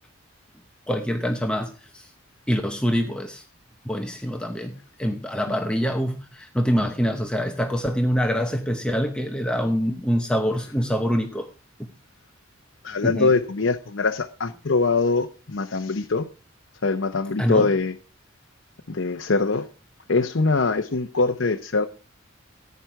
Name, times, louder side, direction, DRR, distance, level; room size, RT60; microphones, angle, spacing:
voice 1, 0.9-2.0 2.5-3.4 3.8-4.7 5.0-11.5 13.0-13.3 17.4-17.7, equal, 5° left, 0.9 m, -25 dB
voice 2, 12.8-16.3 16.8-17.9 18.9-19.6 20.1-21.9, left 3 dB, 65° left, 0.8 m, -23 dB
15.0 x 9.3 x 4.7 m
head